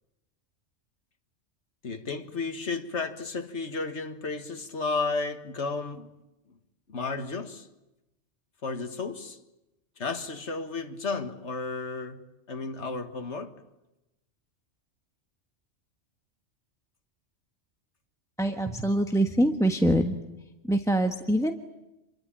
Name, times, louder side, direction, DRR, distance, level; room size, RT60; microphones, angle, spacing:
voice 1, 1.8-6.1 6.9-7.7 8.6-9.4 10.0-12.2 12.5-13.6, left 4 dB, 70° left, 2.0 m, -33 dB
voice 2, 18.4-20.2 20.6-21.5, right 1 dB, 5° left, 1.2 m, -24 dB
28.0 x 23.0 x 8.9 m
omnidirectional pair, 1.2 m